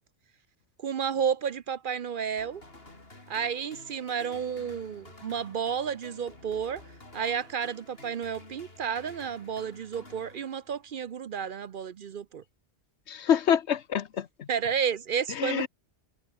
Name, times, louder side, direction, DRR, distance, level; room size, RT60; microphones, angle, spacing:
voice 1, 0.8-2.6 3.3-6.8 7.1-12.4 14.5-15.7, right 7 dB, 55° right, 0.7 m, -31 dB
sound 1, 2.4-11.0, left 2 dB, 60° left, 4.9 m, -51 dB
voice 2, 13.1-14.5 15.3-15.7, left 9 dB, 75° left, 1.2 m, -26 dB
omnidirectional pair, 1.2 m